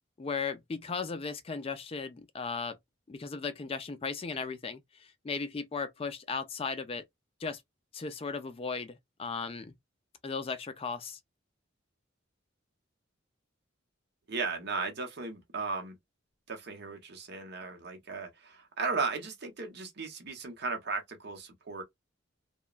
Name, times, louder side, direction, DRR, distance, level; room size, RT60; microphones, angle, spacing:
voice 1, 0.2-2.8 3.1-7.1 7.4-7.6 7.9-9.7 10.2-11.2, left 5 dB, 30° left, 0.3 m, -36 dB
voice 2, 14.3-16.0 16.5-21.8, right 4 dB, 55° right, 0.8 m, -36 dB
2.9 x 2.2 x 2.3 m
head